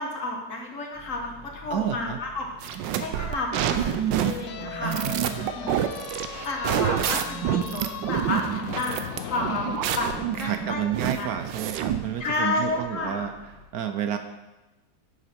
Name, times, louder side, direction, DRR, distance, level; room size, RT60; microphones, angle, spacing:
voice 1, 0.0-5.1 5.5-5.8 6.4-9.7 9.9-10.1 10.4-10.9 11.2-11.3 12.2-13.3, left 2 dB, 50° left, 2 dB, 1.6 m, -31 dB
sound 1, 0.9-13.6, left 1 dB, ahead, 1.5 m, -48 dB
voice 2, 1.7-2.2 4.8-5.8 10.4-13.3 13.7-14.2, right 9 dB, 70° right, 8 dB, 1.0 m, -30 dB
sound 2, 2.6-12.1, right 10 dB, 85° right, 1.3 m, -28 dB
sound 3, 4.2-10.4, left 9 dB, 80° left, 0.6 m, -38 dB
10.5 x 6.9 x 4.4 m, 1.1 s
omnidirectional pair, 1.9 m